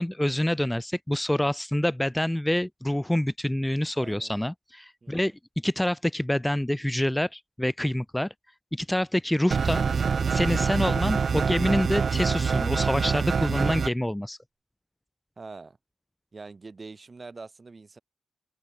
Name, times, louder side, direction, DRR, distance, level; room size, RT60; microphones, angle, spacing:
voice 1, 0.0-5.3 5.6-8.3 8.7-9.8 10.3-14.4, left 1 dB, 10° left, 1.7 m, -26 dB
voice 2, 3.9-4.3 5.0-5.3 15.4-15.8 16.3-18.0, right 3 dB, 40° right, 6.7 m, -44 dB
sound 1, 9.5-13.9, right 6 dB, 60° right, 0.5 m, -25 dB
cardioid pair, 60°, 0 cm